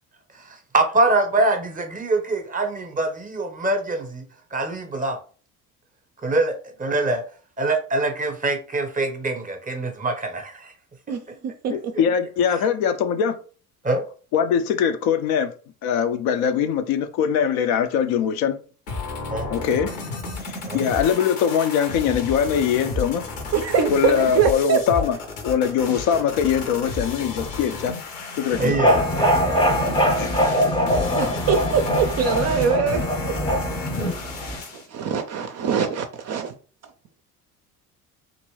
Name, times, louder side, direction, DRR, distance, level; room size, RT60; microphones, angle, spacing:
voice 1, 0.3-4.2 4.5-5.2 6.2-7.2 7.6-10.7 11.7-12.0 13.8-14.0 19.3-19.5 20.7-20.8 28.6-29.4, right 2 dB, 20° right, 0.9 m, -24 dB
voice 2, 11.1-11.9 23.5-24.8 30.2-30.4 31.2-33.4 34.7-36.5, right 6 dB, 35° right, 0.5 m, -23 dB
voice 3, 11.7-13.4 14.3-15.5 15.8-18.6 19.5-19.9 20.4-23.2 23.9-25.2 25.4-28.0 28.4-28.7 30.0-30.3, left 8 dB, 55° left, 0.5 m, -22 dB
sound 1, 18.9-34.9, left 4 dB, 80° left, 1.1 m, -33 dB
sound 2, 28.5-34.6, equal, 10° left, 0.7 m, -22 dB
2.9 x 2.6 x 3.1 m
hypercardioid pair, 60°, 45 cm